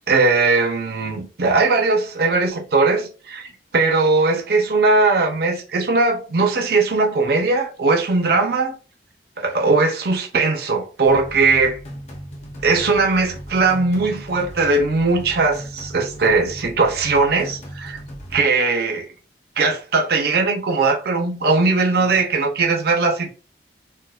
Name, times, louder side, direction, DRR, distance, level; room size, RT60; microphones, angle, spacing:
voice 1, 0.1-3.5 3.7-8.7 9.4-11.8 12.6-18.0 18.3-19.1 19.6-23.3, right 3 dB, 55° right, 0.6 m, -19 dB
sound 1, 11.0-18.4, equal, 35° left, 0.8 m, -37 dB
4.3 x 2.2 x 2.3 m
head